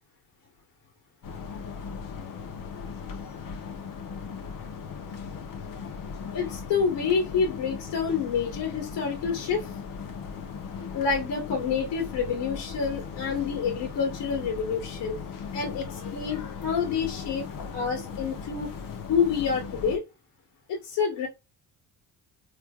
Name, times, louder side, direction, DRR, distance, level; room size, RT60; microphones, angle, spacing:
sound 1, 1.2-20.0, left 6 dB, 50° left, 0.9 m, -38 dB
voice 1, 6.3-9.7 10.9-15.2 15.5-17.4 17.7-18.7 19.1-20.0 20.7-21.3, left 6 dB, 75° left, 0 dB, 1.7 m, -28 dB
3.3 x 3.1 x 2.4 m, 0.24 s
supercardioid pair, 80°, 43 cm